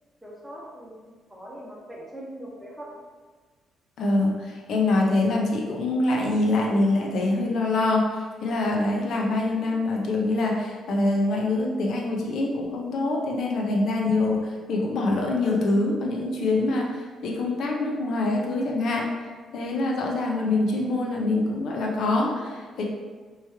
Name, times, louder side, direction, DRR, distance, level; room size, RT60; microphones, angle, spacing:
voice 1, 0.2-2.9, right 1 dB, 5° right, -4 dB, 0.9 m, -41 dB
voice 2, 4.0-19.1 19.5-22.8, left 2 dB, 70° left, -1 dB, 0.7 m, -25 dB
3.1 x 3.0 x 3.4 m, 1.4 s
cardioid pair, 90°, 0 cm